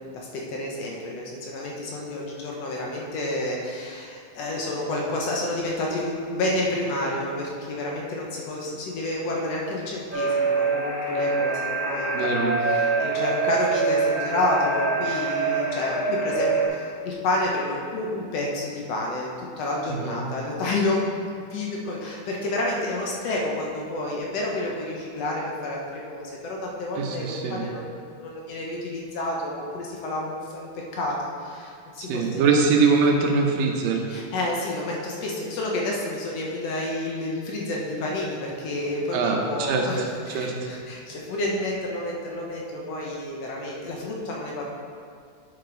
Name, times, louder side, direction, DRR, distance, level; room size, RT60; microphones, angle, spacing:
voice 1, 0.0-12.1 12.6-32.4 34.1-44.6, left 1 dB, 70° left, -2 dB, 1.6 m, -29 dB
sound 1, 10.1-16.7, right 3 dB, 25° left, 0.5 m, -25 dB
voice 2, 12.1-12.6 19.9-20.2 27.0-27.6 32.0-34.0 39.1-40.5, right 4 dB, 75° right, 1 dB, 2.6 m, -23 dB
9.4 x 6.7 x 3.9 m, 2.2 s
omnidirectional pair, 4.1 m